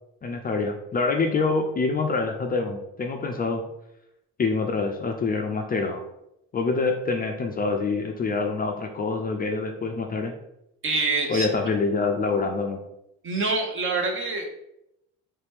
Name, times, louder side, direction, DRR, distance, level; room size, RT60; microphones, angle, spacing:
voice 1, 0.2-3.6 4.4-6.0 6.5-10.3 11.3-12.8, left 4 dB, 30° left, 4 dB, 0.4 m, -26 dB
voice 2, 10.8-11.5 13.2-14.5, right 3 dB, 40° right, 2 dB, 0.9 m, -25 dB
3.2 x 2.9 x 3.4 m, 0.83 s
supercardioid pair, 90°, 32 cm